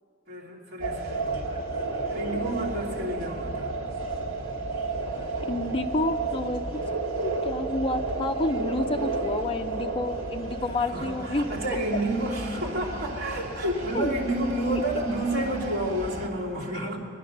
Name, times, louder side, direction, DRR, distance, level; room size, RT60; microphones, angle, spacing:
voice 1, 0.3-1.6 2.1-3.7 10.8-17.0, right 1 dB, 50° right, -5 dB, 2.8 m, -30 dB
sound 1, 0.8-16.3, right 3 dB, 70° right, 2.0 m, -32 dB
voice 2, 5.5-6.6 7.2-11.5 13.9-14.2, left 2 dB, 25° left, 5 dB, 0.5 m, -29 dB
22.0 x 10.0 x 6.5 m, 2.7 s
head